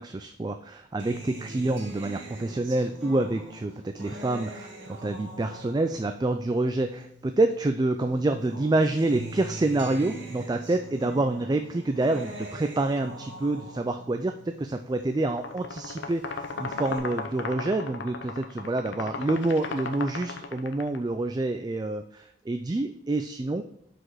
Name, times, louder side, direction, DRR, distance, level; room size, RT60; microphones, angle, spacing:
voice 1, 0.0-23.6, right 2 dB, 20° right, 7 dB, 0.3 m, -27 dB
Acoustic guitar, 1.0-7.6 8.0-15.6 16.0-17.0, right 1 dB, 85° right, 2.1 m, -43 dB
sound 1, 15.2-21.0, left 4 dB, 80° left, 0.7 m, -36 dB
6.0 x 5.0 x 4.7 m, 0.78 s
head